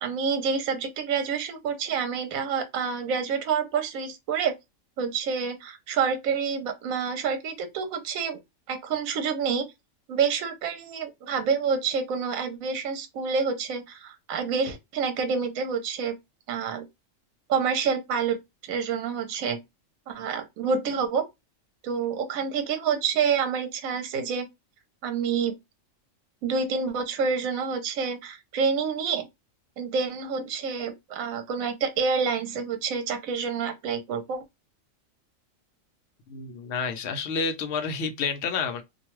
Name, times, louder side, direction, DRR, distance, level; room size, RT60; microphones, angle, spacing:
voice 1, 0.0-4.5 5.0-8.4 8.7-9.7 10.1-16.2 16.5-16.9 17.5-18.4 18.7-19.6 20.1-21.2 21.8-24.5 25.0-25.5 26.4-29.2 29.8-34.4, right 6 dB, 80° right, 1.0 m, -28 dB
voice 2, 36.3-38.8, left 5 dB, 60° left, 0.8 m, -29 dB
2.5 x 2.2 x 2.9 m
omnidirectional pair, 1.4 m